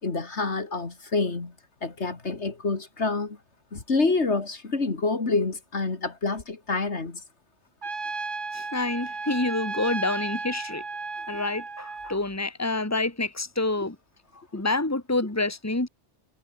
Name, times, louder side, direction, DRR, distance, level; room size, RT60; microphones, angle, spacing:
voice 1, 0.0-1.5 1.8-3.4 3.7-7.2 11.3-11.4 14.5-14.6, left 3 dB, 70° left, 2.9 m, -27 dB
Trumpet, 7.8-12.2, right 3 dB, 45° right, 2.0 m, -34 dB
voice 2, 8.5-10.8 11.3-14.0 14.5-15.9, left 2 dB, 15° left, 2.2 m, -27 dB
omnidirectional pair, 1.2 m